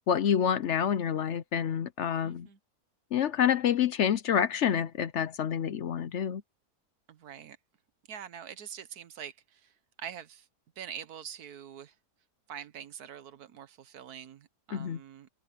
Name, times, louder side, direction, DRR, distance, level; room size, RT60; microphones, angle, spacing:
voice 1, 0.1-2.5 3.1-6.4 14.7-15.0, left 8 dB, 60° left, 0.9 m, -28 dB
voice 2, 2.2-2.6 7.1-7.6 8.1-9.7 10.0-10.5 10.8-11.9 12.5-15.3, right 9 dB, 85° right, 1.6 m, -44 dB
omnidirectional pair, 1.6 m